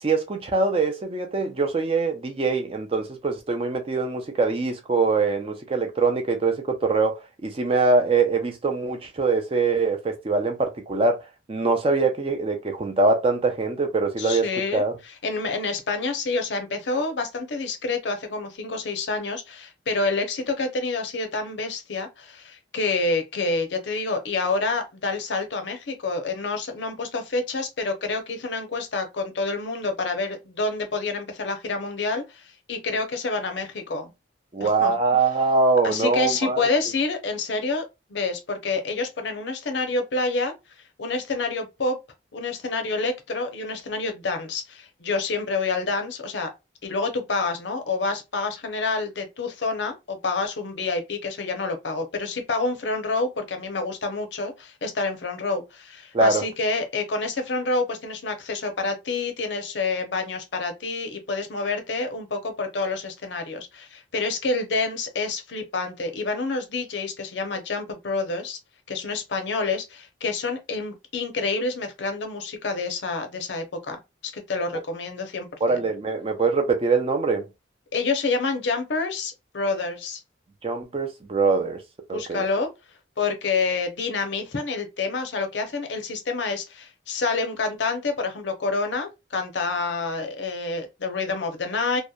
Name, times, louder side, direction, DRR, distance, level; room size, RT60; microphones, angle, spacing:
voice 1, 0.0-11.2 11.5-14.4 14.7-14.9 34.5-36.7 56.1-56.4 75.6-77.5 80.6-81.8 82.1-82.4, right 3 dB, 30° right, 0.4 m, -23 dB
voice 2, 14.2-14.8 15.2-34.1 34.6-34.9 35.8-40.5 41.0-42.0 42.3-46.5 46.8-68.6 68.9-74.0 74.2-75.8 77.9-80.2 82.1-82.7 83.2-92.0, left 3 dB, 70° left, 0.6 m, -28 dB
2.7 x 2.1 x 2.3 m
head